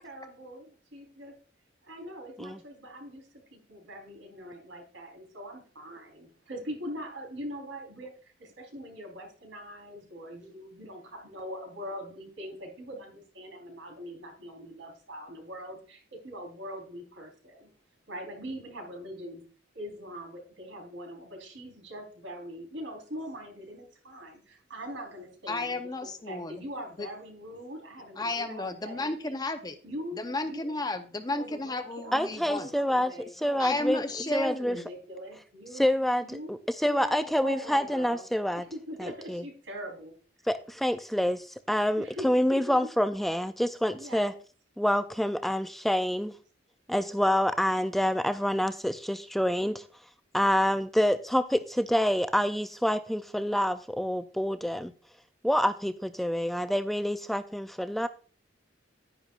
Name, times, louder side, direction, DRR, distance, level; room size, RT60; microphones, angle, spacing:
voice 1, 0.0-1.3 1.8-17.7 18.1-19.4 19.7-29.4 29.8-30.7 31.3-35.8 36.2-36.5 36.8-38.2 38.6-40.1 42.0-42.8 43.9-44.4, equal, 85° right, 2 dB, 3.8 m, -42 dB
voice 2, 25.5-26.6 27.0-27.1 28.2-29.8 30.1-32.7 33.6-34.8, left 2 dB, 20° left, 8 dB, 0.7 m, -33 dB
voice 3, 32.1-33.1 33.4-34.0 34.3-34.8 35.7-38.7 39.0-39.4 40.5-44.3 44.8-46.3 46.9-49.8 50.3-54.9 55.4-58.1, equal, ahead, 10 dB, 0.3 m, -27 dB
11.0 x 10.5 x 2.4 m, 0.40 s
head